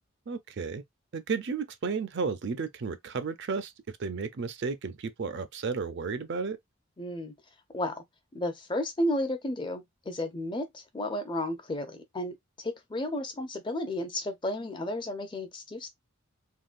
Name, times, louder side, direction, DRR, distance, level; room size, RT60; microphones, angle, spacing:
voice 1, 0.3-0.8 1.1-3.7 4.0-6.6, right 5 dB, 55° right, 0.4 m, -33 dB
voice 2, 7.0-7.3 7.7-8.0 8.3-15.9, left 1 dB, 20° left, 0.5 m, -33 dB
3.6 x 2.2 x 2.4 m
head